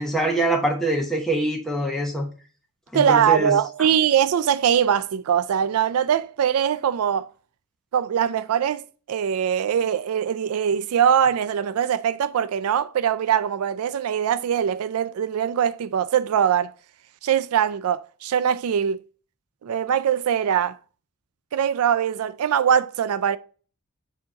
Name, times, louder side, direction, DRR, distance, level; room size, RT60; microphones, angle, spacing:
voice 1, 0.0-2.3 2.9-3.5, right 1 dB, ahead, 0.9 m, -24 dB
voice 2, 2.9-7.3 7.9-16.7 17.2-19.0 19.6-20.8 21.5-23.4, right 8 dB, 85° right, 0.4 m, -22 dB
7.0 x 2.9 x 5.1 m
head